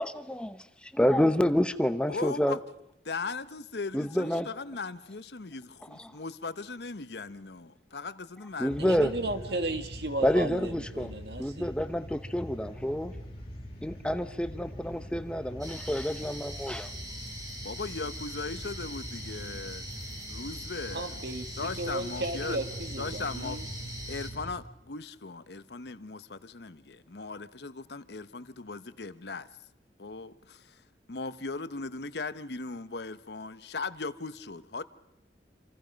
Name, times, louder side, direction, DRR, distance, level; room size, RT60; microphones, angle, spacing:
voice 1, 0.0-0.5 0.8-2.6 3.9-4.5 6.0-6.1 8.6-9.1 10.2-11.1 11.4-13.1 13.8-16.9, equal, 5° left, 11 dB, 0.8 m, -28 dB
voice 2, 2.1-2.6 3.0-9.4 17.6-19.9 20.3-21.1 21.6-22.6 23.0-23.6 24.1-29.5 30.0-34.8, left 3 dB, 70° left, 13 dB, 0.9 m, -38 dB
sound 1, 8.7-24.5, equal, 30° left, 7.0 m, -43 dB
voice 3, 8.8-11.7 20.9-23.7, right 2 dB, 70° right, 8 dB, 2.0 m, -35 dB
sound 2, 15.6-24.3, equal, 20° right, 4.0 m, -43 dB
27.0 x 27.0 x 5.2 m, 0.80 s
head